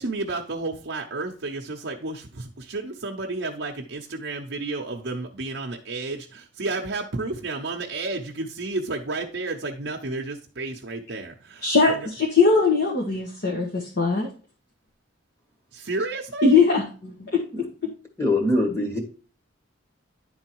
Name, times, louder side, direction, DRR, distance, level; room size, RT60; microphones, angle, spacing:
voice 1, 0.0-12.0 15.7-16.6, right 3 dB, 60° right, 0 dB, 0.8 m, -31 dB
voice 2, 11.6-14.3 16.4-17.7, left 4 dB, 55° left, -2 dB, 1.4 m, -21 dB
voice 3, 18.2-19.0, left 1 dB, 15° left, 2 dB, 1.7 m, -23 dB
10.0 x 3.9 x 4.5 m, 0.38 s
head